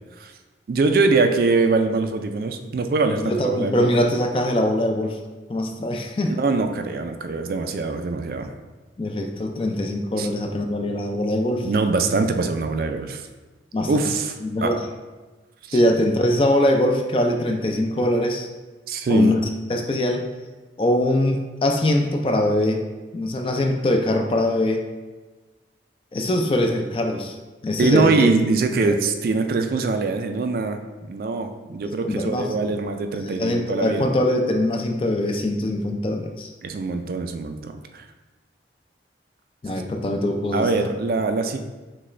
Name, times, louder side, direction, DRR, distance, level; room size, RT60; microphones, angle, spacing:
voice 1, 0.7-3.9 6.3-8.5 10.2-10.3 11.6-13.3 13.9-14.3 14.6-14.7 15.6-15.8 18.9-19.4 27.8-34.0 36.6-38.1 40.5-41.6, right 3 dB, 55° right, 6 dB, 0.3 m, -23 dB
voice 2, 3.2-5.2 5.5-6.3 9.0-11.7 13.7-14.0 14.4-14.8 15.7-18.5 19.1-20.3 20.8-22.9 23.1-24.8 26.1-27.3 27.6-28.4 28.9-29.0 31.8-32.8 33.2-36.5 39.6-40.9, left 1 dB, 30° left, 3 dB, 0.3 m, -22 dB
6.1 x 2.2 x 3.1 m, 1.2 s
head